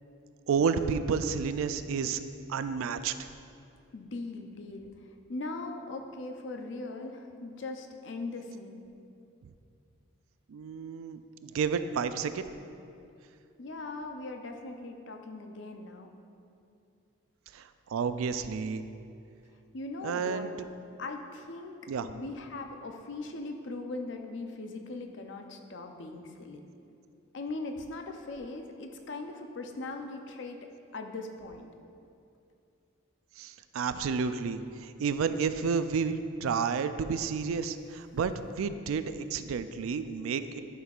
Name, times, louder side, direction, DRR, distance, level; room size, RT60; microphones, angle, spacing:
voice 1, 0.5-2.2 2.5-3.3 10.5-12.4 17.5-18.8 20.0-20.5 21.9-22.1 33.4-40.6, right 5 dB, 80° right, 11 dB, 0.3 m, -31 dB
voice 2, 3.9-8.8 13.6-16.1 19.7-20.5 21.0-26.6 27.3-30.6 30.9-31.7, left 2 dB, 60° left, 4 dB, 0.6 m, -40 dB
11.0 x 5.9 x 2.4 m, 2.6 s
head